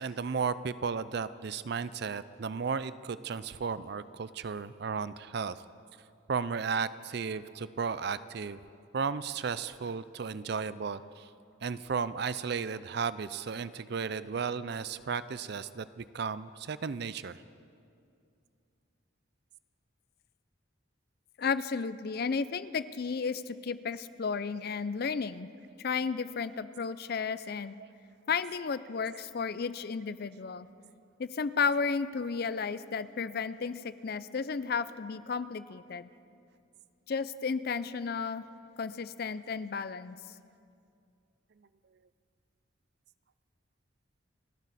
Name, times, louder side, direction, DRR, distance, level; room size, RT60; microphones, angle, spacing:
voice 1, 0.0-5.6 6.3-8.6 8.9-11.3 11.6-17.4, right 5 dB, 50° right, 16 dB, 0.4 m, -34 dB
voice 2, 21.4-25.5 25.8-27.8 28.3-30.7 31.2-36.1 37.1-38.4 38.8-40.2, left 5 dB, 50° left, 15 dB, 0.4 m, -33 dB
29.0 x 11.0 x 4.1 m, 2.5 s
head